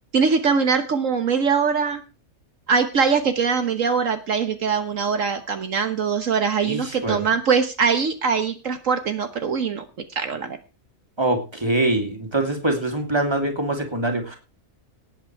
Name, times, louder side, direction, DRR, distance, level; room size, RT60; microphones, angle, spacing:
voice 1, 0.1-2.0 2.7-9.9 10.1-10.6, right 5 dB, 70° right, 8 dB, 1.6 m, -22 dB
voice 2, 6.6-7.3 11.2-14.4, right 1 dB, 20° right, 4 dB, 3.0 m, -24 dB
18.0 x 8.8 x 4.7 m, 0.33 s
omnidirectional pair, 1.4 m